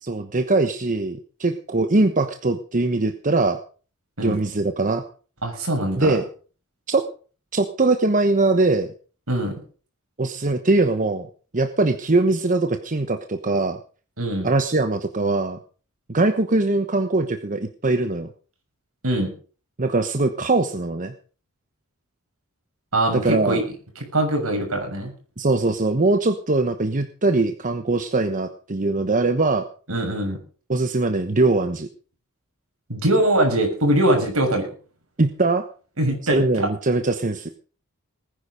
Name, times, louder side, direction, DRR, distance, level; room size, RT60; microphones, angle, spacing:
voice 1, 0.0-3.6 4.2-5.0 6.0-6.2 6.9-7.0 7.5-8.9 10.2-11.3 11.5-13.8 14.4-15.6 16.1-18.3 19.8-21.1 23.1-23.6 25.4-29.7 30.7-31.9 35.2-35.6 36.3-37.5, right 2 dB, 35° right, 7 dB, 1.1 m, -21 dB
voice 2, 5.4-6.2 9.3-9.5 14.2-14.5 19.0-19.3 22.9-23.6 24.1-25.1 29.9-30.4 32.9-34.7 36.0-36.7, right 1 dB, 70° right, 3 dB, 6.5 m, -22 dB
19.5 x 10.0 x 5.3 m, 0.40 s
head